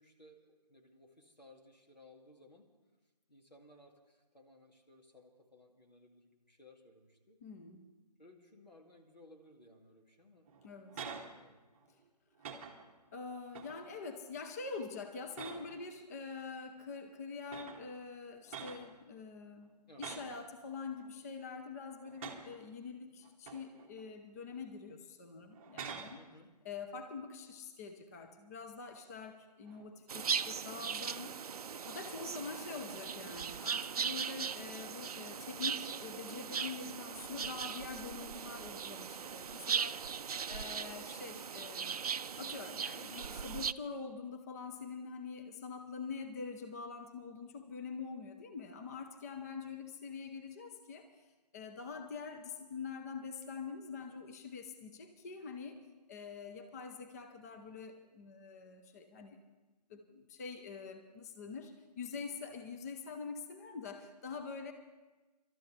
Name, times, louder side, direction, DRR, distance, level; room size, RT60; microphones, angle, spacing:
voice 1, 0.0-2.7 3.3-7.4 8.2-10.5 10.9-11.6 19.9-20.1 26.1-26.6, left 1 dB, 85° left, 2 dB, 2.5 m, -60 dB
voice 2, 7.4-7.9 10.6-11.0 11.9-12.0 13.1-26.2 26.6-31.4 31.9-42.0 42.4-55.8 56.1-59.4 59.9-64.7, left 5 dB, 25° left, 6 dB, 0.7 m, -45 dB
sound 1, 10.5-11.3 11.7-12.0 12.4-13.0 13.5-13.9 14.4-14.7 15.3-15.9 16.9-17.0 17.5-17.9 18.5-18.9 20.0-20.4 20.9-21.5 22.0-22.6 23.2-24.0 24.5-24.7 25.5-26.2 29.6-30.0, right 6 dB, 20° right, 1.0 m, -47 dB
sound 2, 30.1-43.7, right 6 dB, 60° right, 0.4 m, -39 dB
27.0 x 13.0 x 3.3 m, 1.2 s
figure-of-eight pair, 150°, 21 cm